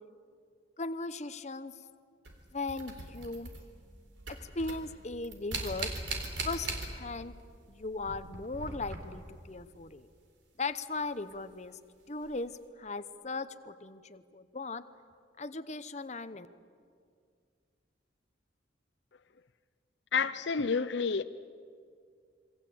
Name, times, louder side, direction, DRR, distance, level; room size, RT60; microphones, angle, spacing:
voice 1, 0.8-1.7 2.5-3.5 4.3-5.9 6.4-7.4 7.7-10.1 10.6-11.8 12.1-14.8 15.4-16.5, left 3 dB, 35° left, 0.9 m, -38 dB
sound 1, 2.2-3.9 4.2-7.3 7.6-9.4 11.3-11.4 12.2-12.4, right 3 dB, 75° right, 3.8 m, -40 dB
voice 2, 20.1-21.2, left 5 dB, 65° left, 0.6 m, -29 dB
27.5 x 23.5 x 8.6 m
head